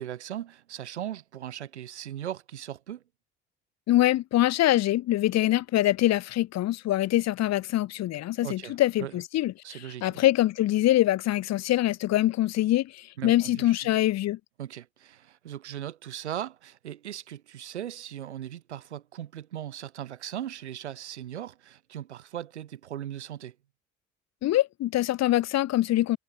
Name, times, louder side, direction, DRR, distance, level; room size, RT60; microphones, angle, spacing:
voice 1, 0.0-3.0 8.4-9.2 9.6-10.2 13.2-13.9 14.6-23.6, right 11 dB, 85° right, 2.5 m, -38 dB
voice 2, 3.9-14.4 24.4-26.2, left 14 dB, 50° left, 0.9 m, -24 dB
hypercardioid pair, 50°, 33 cm